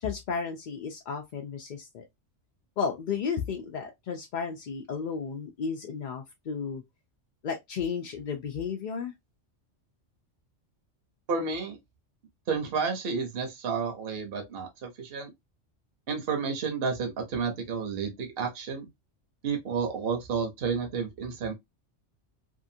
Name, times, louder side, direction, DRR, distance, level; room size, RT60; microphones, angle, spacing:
voice 1, 0.0-2.0 2.8-6.8 7.4-9.1, left 6 dB, 55° left, 0.5 m, -33 dB
voice 2, 11.3-11.8 12.5-15.3 16.1-18.9 19.4-21.5, right 5 dB, 55° right, 1.0 m, -31 dB
2.8 x 2.4 x 2.6 m
omnidirectional pair, 1.2 m